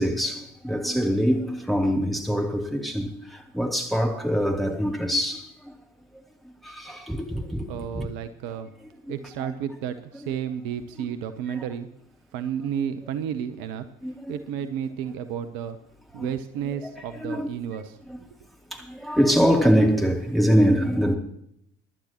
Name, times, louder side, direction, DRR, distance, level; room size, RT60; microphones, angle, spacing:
voice 1, 0.0-5.7 6.6-7.7 7.9-8.1 14.0-14.3 16.2-16.3 17.2-17.5 18.7-21.1, equal, ahead, 2.9 m, -23 dB
voice 2, 7.7-8.7 9.1-11.9 12.3-13.8 14.3-15.8 16.1-18.0, right 8 dB, 60° right, 0.9 m, -32 dB
24.0 x 11.5 x 3.0 m
figure-of-eight pair, 50°, 40 cm